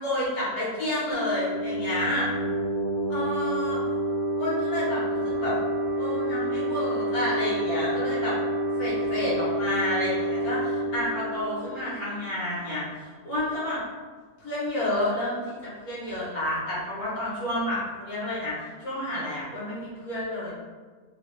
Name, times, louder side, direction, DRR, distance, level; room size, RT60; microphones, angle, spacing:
voice 1, 0.0-2.3 3.1-3.8 4.4-5.6 6.0-8.4 8.8-13.8 14.4-18.5 18.8-20.5, left 1 dB, 65° left, -8 dB, 1.4 m, -30 dB
sound 1, 1.1-12.5, right 1 dB, 60° right, 0.9 m, -28 dB
3.1 x 2.2 x 3.0 m, 1.5 s
omnidirectional pair, 1.8 m